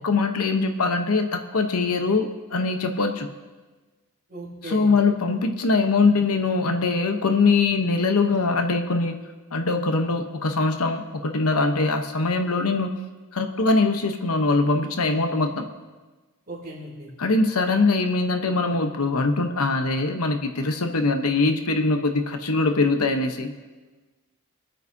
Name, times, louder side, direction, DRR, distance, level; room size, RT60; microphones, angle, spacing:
voice 1, 0.0-3.3 4.7-9.2 9.5-12.9 13.3-15.7 17.2-23.5, left 3 dB, 80° left, 6 dB, 1.0 m, -22 dB
voice 2, 4.3-4.9 16.5-17.1, right 1 dB, 45° right, -4 dB, 3.4 m, -37 dB
23.0 x 9.0 x 2.8 m, 1.3 s
head